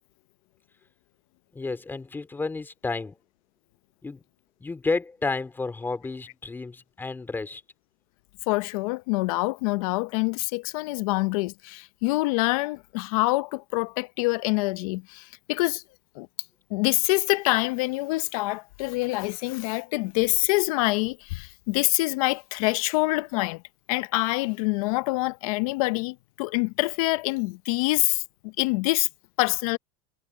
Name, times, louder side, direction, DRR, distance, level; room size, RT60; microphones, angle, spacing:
voice 1, 1.5-3.2 4.0-4.2 4.6-7.6, left 3 dB, 10° left, 2.9 m, -31 dB
voice 2, 8.5-15.8 16.1-16.3 16.7-23.6 23.9-29.1 29.4-29.8, left 22 dB, 65° left, 0.9 m, -26 dB
supercardioid pair, 145°, 19 cm